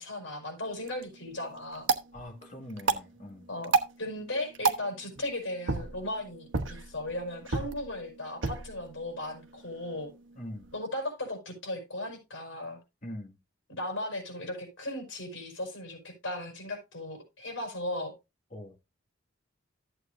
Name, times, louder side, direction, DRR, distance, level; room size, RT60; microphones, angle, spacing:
voice 1, 0.0-1.9 3.5-10.1 10.7-12.8 13.7-18.1, left 1 dB, 65° left, 5.4 m, -37 dB
sound 1, 0.7-10.8, right 4 dB, 70° right, 1.0 m, -34 dB
voice 2, 2.1-3.5 10.4-10.7 13.0-13.4 18.5-18.8, left 1 dB, 40° left, 2.0 m, -42 dB
14.0 x 8.0 x 2.6 m
head